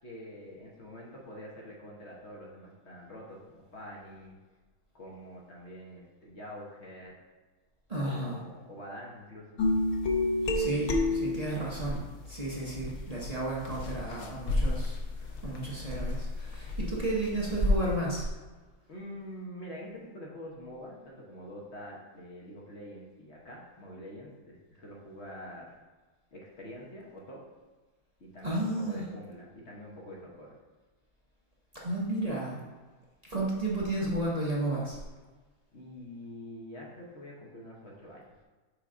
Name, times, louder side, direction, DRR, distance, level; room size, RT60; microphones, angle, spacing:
voice 1, 0.0-4.4 4.9-7.1 8.0-9.6 18.9-25.8 26.3-27.4 28.2-30.5 35.7-38.3, equal, 55° left, -3 dB, 1.4 m, -46 dB
voice 2, 7.9-8.4 10.5-18.2 28.4-29.0 31.8-32.6 33.3-35.0, right 1 dB, 30° right, -5 dB, 0.9 m, -32 dB
sound 1, 9.6-12.0 12.7-17.9, left 2 dB, 80° left, 1.3 m, -31 dB
6.8 x 4.7 x 3.7 m, 1.3 s
omnidirectional pair, 1.5 m